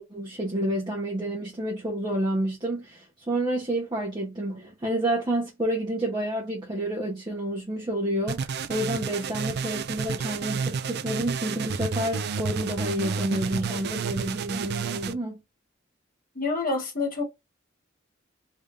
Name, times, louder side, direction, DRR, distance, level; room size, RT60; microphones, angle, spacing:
voice 1, 0.0-15.4, right 1 dB, 25° right, 1.0 m, -29 dB
sound 1, 8.3-15.1, right 5 dB, 55° right, 0.4 m, -31 dB
voice 2, 16.3-17.2, left 3 dB, 45° left, 1.2 m, -27 dB
3.4 x 3.4 x 2.6 m
head